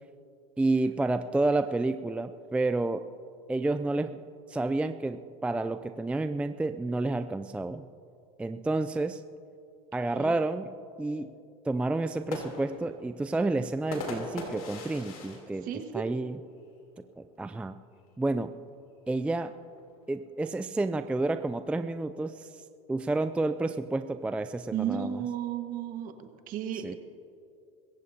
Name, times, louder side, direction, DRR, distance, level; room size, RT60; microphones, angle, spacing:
voice 1, 0.6-3.1 3.5-4.2 4.5-7.9 8.4-9.2 9.9-11.3 11.6-15.7 15.9-16.4 17.2-17.7 18.2-18.5 19.1-19.5 20.1-22.6 22.9-25.2 26.8-27.0, right 2 dB, 5° right, 10 dB, 0.4 m, -30 dB
sound 1, 12.0-16.6 17.0-17.1 17.4-17.9 18.7-20.3, left 3 dB, 90° left, 3.3 m, -41 dB
voice 2, 15.6-16.1 24.7-27.0, right 9 dB, 50° right, 6 dB, 1.6 m, -34 dB
25.0 x 15.0 x 2.8 m, 2.6 s
supercardioid pair, 105°, 18 cm